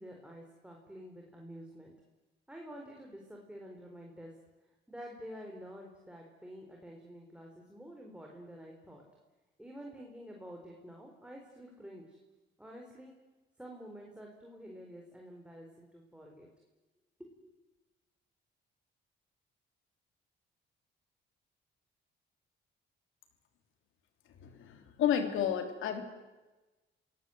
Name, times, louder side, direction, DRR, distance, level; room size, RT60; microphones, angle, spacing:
voice 1, 0.0-1.9 2.5-4.3 4.9-9.0 9.6-12.2 12.6-13.1 13.6-16.5 17.3-17.5, equal, 5° right, 0 dB, 4.5 m, -49 dB
voice 2, 24.4-26.0, left 9 dB, 85° left, 6 dB, 3.2 m, -31 dB
27.0 x 17.5 x 8.0 m, 1.1 s
cardioid pair, 90°, 20 cm